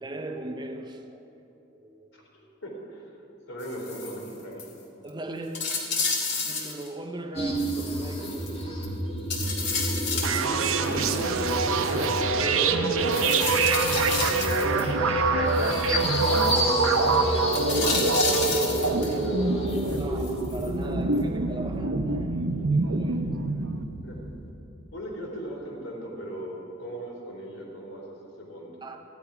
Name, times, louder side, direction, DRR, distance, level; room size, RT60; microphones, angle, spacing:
voice 1, 0.0-1.3 1.7-2.2 5.0-5.8 6.4-8.7 9.1-9.8 14.6-15.2 20.0-23.4 28.8-29.0, right 1 dB, 20° right, 0.6 m, -39 dB
voice 2, 2.1-3.1 3.5-4.6 10.1-13.5 16.0-19.7 24.0-24.1 24.9-28.7, equal, 75° left, 3.5 m, -39 dB
sound 1, 3.6-4.3 4.6-4.7 5.1-5.2 5.5-6.9 7.6-8.9 9.3-10.4 10.9-12.2 13.1-14.9 15.6-16.6 17.5-19.2 19.7-20.7 21.1-21.2, left 4 dB, 55° left, 1.9 m, -32 dB
sound 2, 7.3-24.5, right 1 dB, 30° left, 1.6 m, -29 dB
sound 3, 10.2-23.8, right 3 dB, 90° right, 0.8 m, -26 dB
14.5 x 10.5 x 5.0 m
head